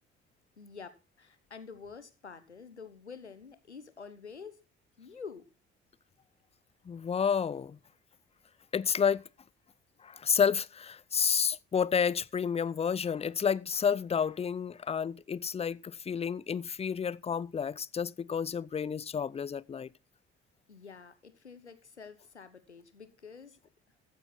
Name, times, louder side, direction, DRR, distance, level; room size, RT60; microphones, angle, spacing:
voice 1, 0.6-4.6 5.0-5.4 20.7-23.5, left 5 dB, 85° left, 1.1 m, -48 dB
voice 2, 6.9-7.8 8.7-9.3 10.0-19.9, left 7 dB, 20° left, 0.6 m, -30 dB
15.0 x 8.8 x 3.9 m
figure-of-eight pair, 50°, 33 cm